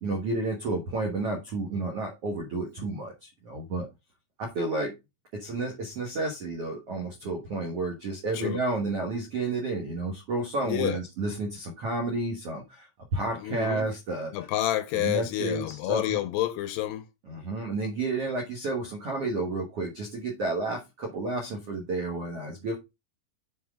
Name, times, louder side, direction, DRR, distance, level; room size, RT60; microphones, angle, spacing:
voice 1, 0.0-3.9 4.4-4.9 5.3-14.3 14.9-16.2 17.3-22.8, right 2 dB, 70° right, 1.4 m, -31 dB
voice 2, 10.7-11.0 13.4-13.9 14.3-17.1, left 14 dB, 80° left, 2.6 m, -29 dB
9.5 x 4.6 x 3.6 m
omnidirectional pair, 5.1 m